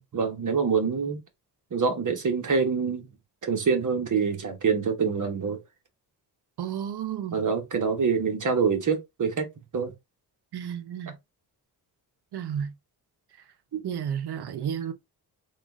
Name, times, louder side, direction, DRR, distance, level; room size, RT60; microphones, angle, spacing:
voice 1, 0.1-1.2 1.7-3.1 3.4-5.6 7.3-9.5 9.7-9.9 13.7-13.9, right 5 dB, 50° right, 1.2 m, -25 dB
voice 2, 6.6-7.4 10.5-11.2 12.3-12.7 13.8-14.9, right 8 dB, 75° right, 0.8 m, -32 dB
3.7 x 2.4 x 3.6 m
cardioid pair, 85°, 39 cm